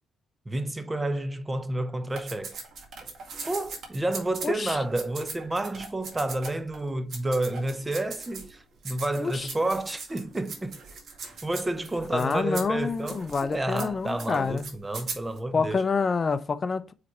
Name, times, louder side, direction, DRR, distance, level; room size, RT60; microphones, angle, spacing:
voice 1, 0.5-2.6 3.5-10.8 11.4-15.8, right 2 dB, 20° right, 0.7 m, -30 dB
sound 1, 2.1-6.8 7.1-8.6 8.8-15.4, right 4 dB, 60° right, 2.0 m, -40 dB
voice 2, 4.4-4.8 9.2-9.5 12.1-14.7 15.5-16.9, left 5 dB, 35° left, 0.5 m, -27 dB
5.0 x 4.2 x 4.6 m
cardioid pair, 90°, 0 cm